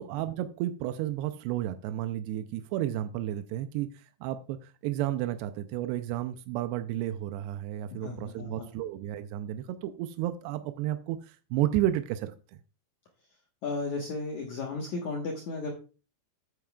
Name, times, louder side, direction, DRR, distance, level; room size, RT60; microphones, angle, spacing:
voice 1, 0.0-12.3, right 13 dB, 85° right, 9 dB, 2.4 m, -32 dB
voice 2, 7.9-8.7 13.6-15.7, left 3 dB, 80° left, 0 dB, 1.7 m, -34 dB
12.5 x 8.6 x 2.3 m, 0.34 s
omnidirectional pair, 5.4 m